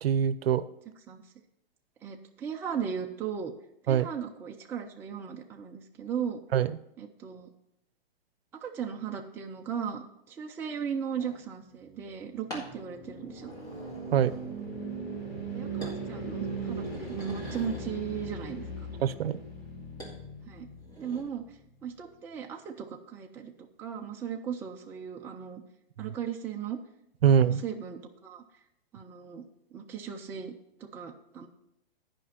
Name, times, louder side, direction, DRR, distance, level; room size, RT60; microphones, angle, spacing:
voice 1, 0.0-0.6 3.9-4.1 6.5-6.7 14.1-14.3 19.0-19.4 27.2-27.6, right 8 dB, 75° right, 15 dB, 0.6 m, -23 dB
voice 2, 2.0-3.5 3.8-6.4 7.0-7.5 8.6-13.5 15.5-18.9 20.5-20.7 21.0-23.5 23.8-25.6 26.0-26.8 27.3-28.4 28.9-29.5 29.7-30.5 30.8-31.5, right 7 dB, 10° right, 2 dB, 0.4 m, -37 dB
sound 1, 11.2-11.4 12.5-12.7 13.3-14.7 15.1-15.5 15.8-16.0 16.5-17.9 20.0-20.2 20.7-21.2, right 1 dB, 10° left, 1.9 m, -45 dB
sound 2, 12.1-21.4, right 3 dB, 85° left, 4.2 m, -39 dB
9.9 x 5.2 x 5.7 m, 0.79 s
hypercardioid pair, 140°, 30 cm